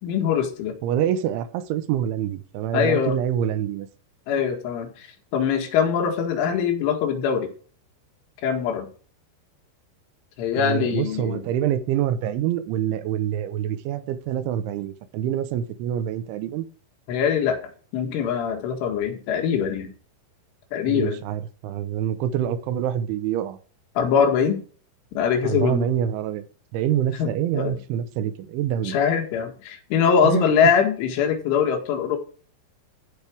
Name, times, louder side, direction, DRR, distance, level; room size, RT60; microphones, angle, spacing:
voice 1, 0.0-0.8 2.7-3.2 4.3-5.1 5.3-7.5 8.4-8.9 10.4-11.5 17.1-17.6 17.9-19.9 20.7-21.2 24.0-24.6 25.1-25.9 27.2-27.8 28.8-32.2, left 7 dB, 85° left, 4.4 m, -22 dB
voice 2, 0.8-3.9 10.6-16.7 20.9-23.6 25.4-26.5 26.7-29.0 30.2-30.5, right 10 dB, 80° right, 3.3 m, -26 dB
15.0 x 5.3 x 4.7 m
omnidirectional pair, 5.4 m